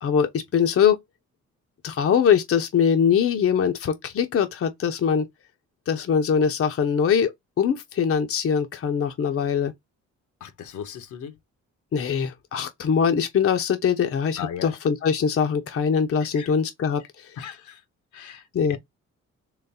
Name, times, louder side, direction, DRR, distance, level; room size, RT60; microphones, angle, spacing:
voice 1, 0.0-1.0 1.8-5.3 5.9-9.7 11.9-17.0 18.5-18.8, left 7 dB, 50° left, 0.8 m, -22 dB
voice 2, 10.4-11.3 14.4-14.8 16.2-16.5 17.4-17.8 18.1-18.8, left 8 dB, 75° left, 1.1 m, -37 dB
4.0 x 3.1 x 4.2 m
cardioid pair, 90°, 30 cm